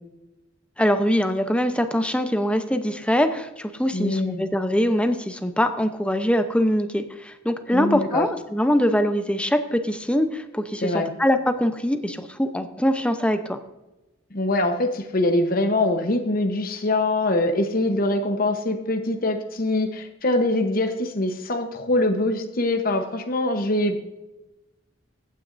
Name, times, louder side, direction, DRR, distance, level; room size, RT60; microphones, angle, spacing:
voice 1, 0.8-13.6, equal, 5° left, 8 dB, 0.7 m, -23 dB
voice 2, 3.9-4.5 7.7-8.3 10.8-11.1 14.3-24.0, left 2 dB, 45° left, 5 dB, 1.0 m, -23 dB
15.5 x 9.3 x 2.6 m, 1.0 s
head